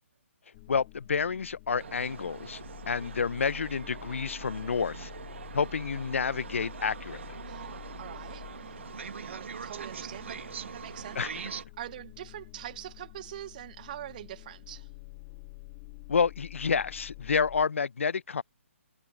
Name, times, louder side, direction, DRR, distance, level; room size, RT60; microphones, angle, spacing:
sound 1, 0.5-17.7, left 28 dB, 25° left, 5.1 m, -48 dB
voice 1, 0.7-5.1 5.5-7.4 11.2-11.3 16.1-18.4, left 5 dB, 65° left, 0.7 m, -29 dB
sound 2, 1.8-11.7, right 6 dB, 55° right, 1.6 m, -43 dB
voice 2, 7.5-8.8 9.2-10.5 10.7-11.2 11.8-14.9, right 13 dB, 35° right, 1.0 m, -43 dB
figure-of-eight pair, 140°, 7 cm